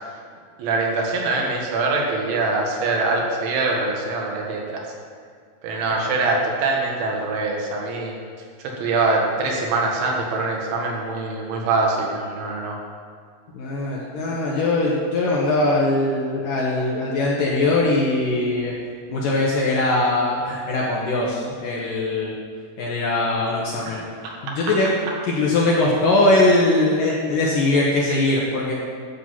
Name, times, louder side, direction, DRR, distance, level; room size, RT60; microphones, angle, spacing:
voice 1, 0.6-4.8 5.6-8.2 8.8-12.8, right 3 dB, 80° right, -1 dB, 4.0 m, -23 dB
voice 2, 13.5-18.8 19.1-22.3 22.8-24.1 24.4-25.0 25.3-28.8, left 2 dB, 70° left, -4 dB, 2.2 m, -21 dB
11.5 x 7.9 x 5.6 m, 2.1 s
omnidirectional pair, 5.3 m